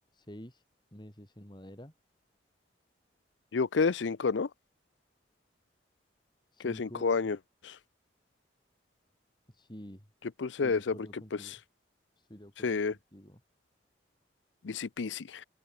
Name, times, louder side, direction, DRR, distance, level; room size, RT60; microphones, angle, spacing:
voice 1, 0.1-0.6 0.9-1.9 6.5-7.3 9.5-10.0 10.6-11.5 12.2-13.4, equal, 25° left, 4.3 m, -49 dB
voice 2, 3.5-4.5 6.6-7.4 7.6-7.8 10.4-11.0 11.3-11.6 12.6-13.0 14.6-15.4, left 4 dB, 90° left, 0.6 m, -30 dB
open air
head